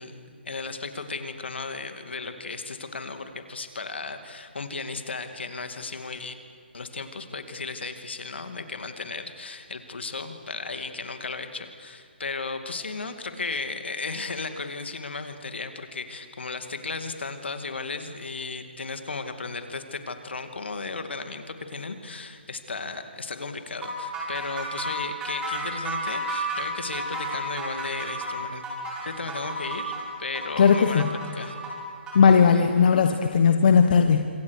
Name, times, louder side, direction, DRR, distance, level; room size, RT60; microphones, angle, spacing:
voice 1, 0.0-6.3 6.7-28.6 29.1-31.5, left 4 dB, 75° left, 8 dB, 2.4 m, -35 dB
sound 1, 23.8-32.4, right 1 dB, 15° right, 5.4 m, -32 dB
voice 2, 30.6-31.1 32.1-34.3, left 6 dB, 50° left, 6 dB, 1.3 m, -18 dB
26.5 x 24.0 x 6.6 m, 2.1 s
figure-of-eight pair, 145°, 6 cm